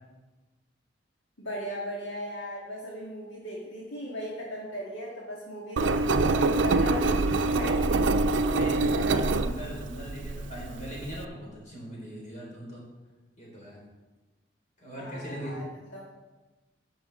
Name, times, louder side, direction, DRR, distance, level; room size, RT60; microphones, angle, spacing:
voice 1, 1.4-7.8 15.0-15.6 15.9-16.0, equal, 75° left, -4 dB, 1.9 m, -37 dB
Engine, 5.8-11.2, right 3 dB, 80° right, 0.5 m, -25 dB
voice 2, 8.4-12.8 13.4-13.8 14.8-15.6, equal, 45° left, -4 dB, 4.3 m, -39 dB
10.0 x 6.8 x 6.1 m, 1.2 s
head